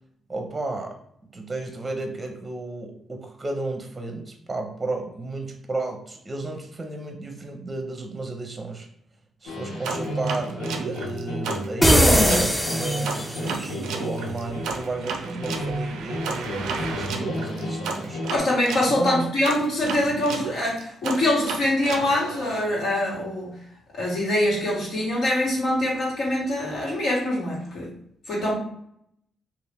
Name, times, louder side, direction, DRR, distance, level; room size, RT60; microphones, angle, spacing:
voice 1, 0.3-1.0 1.3-8.9 9.4-18.2 18.9-19.3, right 2 dB, 30° right, 4 dB, 0.6 m, -33 dB
sound 1, 9.5-18.4, equal, 85° left, 0.9 m, -32 dB
sound 2, 9.8-12.5 13.0-18.9 19.4-22.6, right 5 dB, 85° right, 0.4 m, -33 dB
sound 3, 11.8-13.6, equal, 10° left, 0.6 m, -19 dB
voice 2, 18.3-23.6 23.9-27.9 28.3-28.6, left 1 dB, 70° left, -5 dB, 1.4 m, -24 dB
2.8 x 2.4 x 3.3 m, 0.70 s
supercardioid pair, 60°, 0 cm